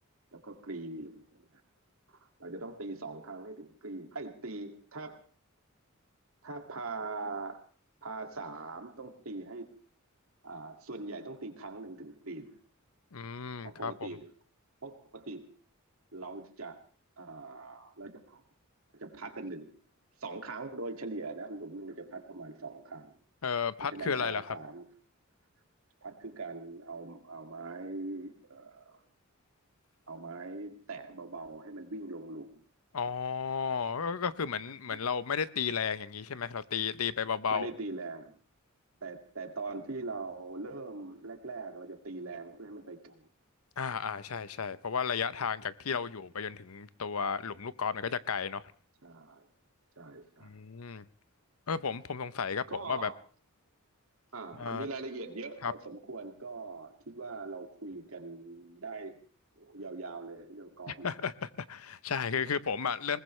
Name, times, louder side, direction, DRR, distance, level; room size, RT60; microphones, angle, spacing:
voice 1, 0.3-1.5 2.4-5.2 6.4-7.6 8.0-9.7 10.4-12.5 13.6-14.3 14.8-15.5 16.1-16.8 17.2-18.4 18.9-19.7 20.2-23.1 23.9-24.9 26.0-29.0 30.1-32.6 37.5-38.3 39.0-43.3 49.0-49.4 50.0-50.5 52.7-53.1 54.3-59.2 59.6-61.1, right 3 dB, 75° right, 4 dB, 2.3 m, -41 dB
voice 2, 13.1-14.1 23.4-24.5 32.9-37.7 43.8-48.7 50.4-51.0 51.7-53.1 54.6-54.9 55.6-55.7 60.9-63.2, left 6 dB, 90° left, 15 dB, 0.8 m, -33 dB
21.5 x 20.0 x 3.3 m, 0.43 s
head